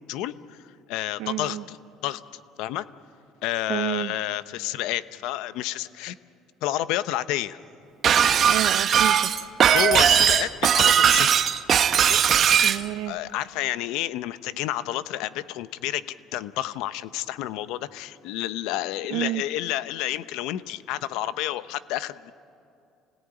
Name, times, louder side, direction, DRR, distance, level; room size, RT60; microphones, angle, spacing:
voice 1, 0.1-1.8 2.0-2.9 3.4-6.2 6.6-7.6 9.7-11.5 11.9-12.5 13.1-22.3, left 14 dB, 80° left, 14 dB, 0.9 m, -30 dB
voice 2, 1.2-1.6 3.7-4.1 8.5-9.3 12.6-13.2 19.1-19.4, right 15 dB, 85° right, 14 dB, 0.8 m, -29 dB
Shatter, 8.0-12.8, right 8 dB, 45° right, 1.0 m, -19 dB
28.0 x 17.5 x 10.0 m, 2.6 s
cardioid pair, 110°, 0 cm